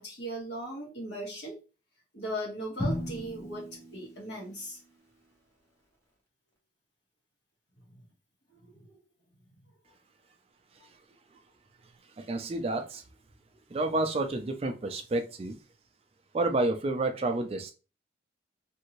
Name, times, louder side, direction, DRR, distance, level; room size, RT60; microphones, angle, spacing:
voice 1, 0.0-1.6 2.1-4.8 8.0-8.1 8.6-9.0 10.8-10.9, equal, 65° left, 1.3 m, -38 dB
Drum, 2.8-4.8, equal, 15° left, 0.8 m, -36 dB
voice 2, 12.2-13.0 13.7-15.6 16.3-17.7, right 2 dB, 30° right, 0.3 m, -29 dB
2.7 x 2.5 x 3.0 m
head